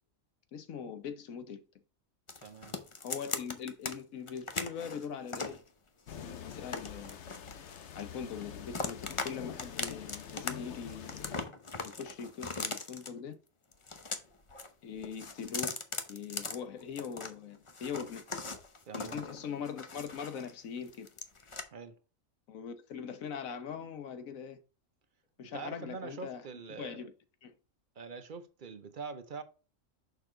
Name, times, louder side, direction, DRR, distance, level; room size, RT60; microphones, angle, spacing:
voice 1, 0.5-1.6 3.0-5.6 6.2-7.2 7.9-11.2 11.8-13.4 14.8-15.8 16.1-18.2 19.0-21.1 22.5-24.6 25.4-26.5 26.8-27.1 27.4-27.5, left 7 dB, 75° left, 1.3 m, -41 dB
sound 1, 2.3-3.9 4.3-5.6 6.1-8.1 8.4-9.3 9.6-10.5 10.8-13.1 13.7-14.7 15.0-17.3 17.7-20.5 20.8-21.6, left 3 dB, 30° left, 0.7 m, -39 dB
voice 2, 2.4-2.8 18.9-19.2 21.7-21.9 25.4-27.0 28.0-29.4, right 5 dB, 45° right, 0.7 m, -44 dB
sound 2, 6.1-11.5, left 8 dB, 60° left, 1.0 m, -46 dB
6.6 x 4.7 x 3.7 m
omnidirectional pair, 1.4 m